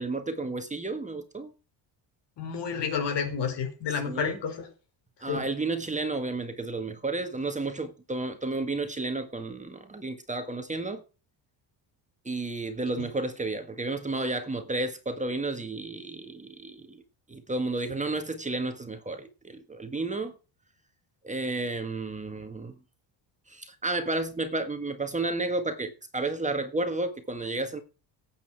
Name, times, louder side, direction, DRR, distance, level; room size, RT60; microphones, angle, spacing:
voice 1, 0.0-1.5 4.1-4.4 5.2-11.0 12.2-17.0 17.3-20.3 21.2-22.7 23.5-27.8, right 2 dB, 15° right, 1.6 m, -32 dB
voice 2, 2.4-4.7 5.3-5.5, left 6 dB, 60° left, 5.2 m, -30 dB
17.0 x 8.8 x 4.7 m
cardioid pair, 125°, 46 cm